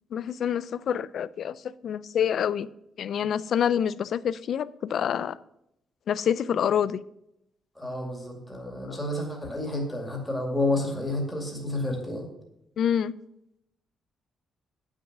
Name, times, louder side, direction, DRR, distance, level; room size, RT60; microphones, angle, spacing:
voice 1, 0.1-2.7 3.0-5.4 6.1-7.0 8.9-9.0 12.8-13.1, left 8 dB, 50° left, 0.4 m, -27 dB
voice 2, 7.8-12.3, left 1 dB, 5° left, 2.3 m, -30 dB
9.6 x 6.2 x 6.0 m
cardioid pair, 170°, 0 cm